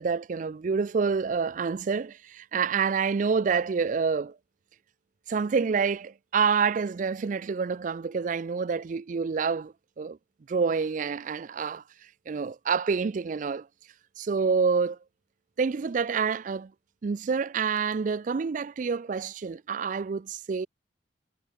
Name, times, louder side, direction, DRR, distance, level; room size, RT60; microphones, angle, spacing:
voice 1, 0.0-4.4 5.3-10.2 10.5-11.8 12.3-13.7 14.2-15.0 15.6-16.7 17.0-20.7, right 5 dB, 45° right, 0.4 m, -27 dB
head